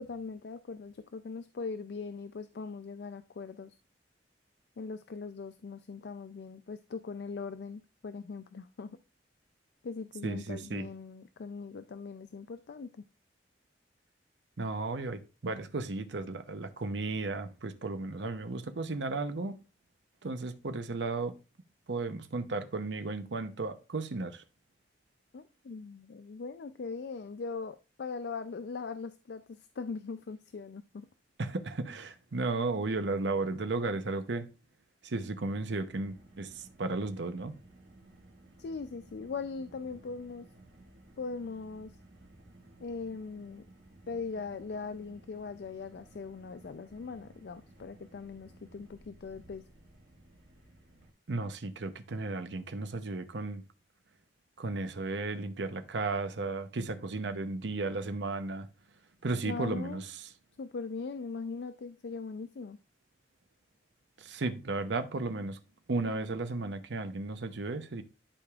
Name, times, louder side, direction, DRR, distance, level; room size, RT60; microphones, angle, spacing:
voice 1, 0.0-3.8 4.8-9.0 9.8-12.9 25.3-31.1 38.6-40.5 41.2-42.0 42.8-43.6 44.1-49.6 59.4-60.1 60.6-62.8, left 4 dB, 65° left, 0.4 m, -40 dB
voice 2, 10.2-10.9 14.6-19.6 20.2-21.3 21.9-24.4 31.4-34.5 35.0-37.5 51.3-53.6 54.6-58.7 59.2-60.1 64.2-65.6 65.9-68.0, right 3 dB, 80° right, 0.7 m, -34 dB
Car, 35.9-51.1, right 1 dB, 65° right, 1.8 m, -57 dB
11.5 x 4.9 x 2.4 m
head